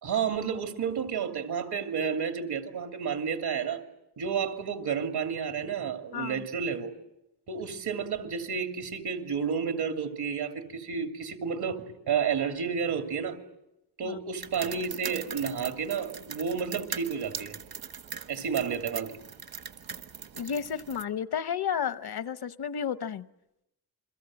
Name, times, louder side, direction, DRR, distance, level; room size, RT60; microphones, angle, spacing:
voice 1, 0.0-3.8 4.2-6.9 7.5-13.4 14.0-17.5 18.3-19.1, right 6 dB, 85° right, 2.9 m, -31 dB
voice 2, 6.1-6.4 14.0-14.2 20.4-23.3, left 8 dB, 75° left, 1.0 m, -32 dB
sound 1, 14.4-21.0, right 6 dB, 65° right, 1.4 m, -41 dB
29.0 x 23.0 x 7.7 m
wide cardioid pair, 130°, 38 cm